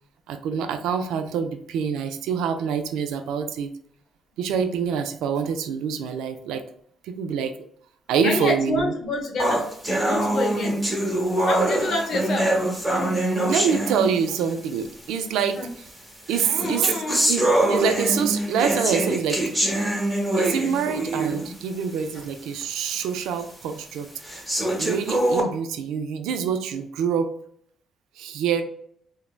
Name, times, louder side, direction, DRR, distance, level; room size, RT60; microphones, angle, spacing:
voice 1, 0.3-3.7 4.4-6.6 7.0-7.5 8.1-8.9 13.3-15.6 16.3-17.0 17.3-19.4 20.4-24.1 24.5-27.3 28.2-28.6, right 7 dB, 90° right, 8 dB, 0.3 m, -26 dB
voice 2, 8.2-9.7 10.0-10.8 11.5-12.6 15.6-15.7 16.4-17.3 22.1-22.2, left 2 dB, 65° left, 2 dB, 0.7 m, -27 dB
sound 1, 9.4-14.5 15.4-15.5 16.3-21.6 22.0-22.1 22.6-22.7 23.4-23.5 24.2-25.4, right 1 dB, 5° right, 0.9 m, -24 dB
3.1 x 2.0 x 2.2 m, 0.65 s
cardioid pair, 90°, 0 cm